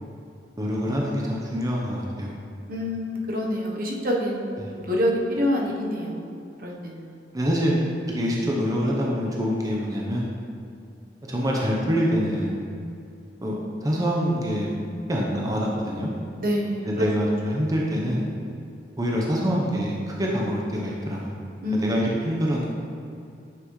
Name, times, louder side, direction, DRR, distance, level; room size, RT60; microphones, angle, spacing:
voice 1, 0.6-2.3 4.6-4.7 7.3-7.7 8.1-10.3 11.2-12.6 13.4-14.8 15.1-16.1 16.8-18.3 19.0-21.3 21.7-22.6, equal, 20° right, -3 dB, 0.8 m, -25 dB
voice 2, 2.7-7.2 16.4-17.1 21.6-22.0, left 1 dB, 55° right, -1 dB, 1.0 m, -27 dB
9.5 x 6.0 x 3.2 m, 2.4 s
head